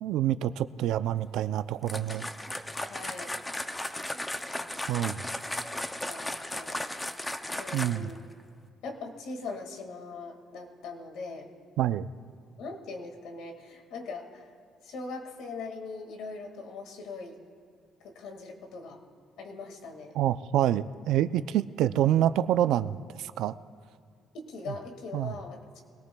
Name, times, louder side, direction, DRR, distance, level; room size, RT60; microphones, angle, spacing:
voice 1, 0.0-2.3 4.9-5.2 7.7-8.1 11.8-12.1 20.1-23.5 25.1-25.3, right 12 dB, 70° right, 13 dB, 0.4 m, -27 dB
sound 1, 1.8-8.2, left 1 dB, 5° left, 0.5 m, -35 dB
voice 2, 2.9-3.4 4.1-5.2 6.0-6.8 7.5-8.2 8.8-11.5 12.6-14.5 14.8-17.4 18.0-19.0 19.4-20.2 24.3-25.8, left 3 dB, 70° left, 3 dB, 1.9 m, -41 dB
22.5 x 18.0 x 2.3 m, 2.2 s
cardioid pair, 175°, 0 cm